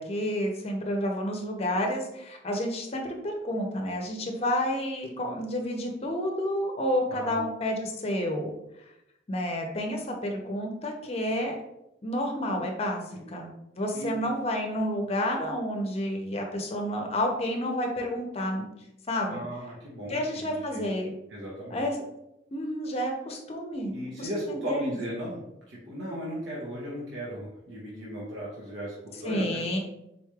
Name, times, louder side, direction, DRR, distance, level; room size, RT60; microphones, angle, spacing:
voice 1, 0.0-8.5 9.3-11.6 12.0-18.6 19.1-19.4 20.1-21.1 21.7-22.0 22.5-25.0 29.2-29.8, left 1 dB, 35° left, 2 dB, 0.6 m, -30 dB
voice 2, 7.1-7.4 13.1-13.2 13.9-14.1 19.3-20.9 21.3-21.9 23.9-25.4 25.7-29.8, equal, 85° right, -6 dB, 0.9 m, -36 dB
3.9 x 3.1 x 2.3 m, 0.85 s
head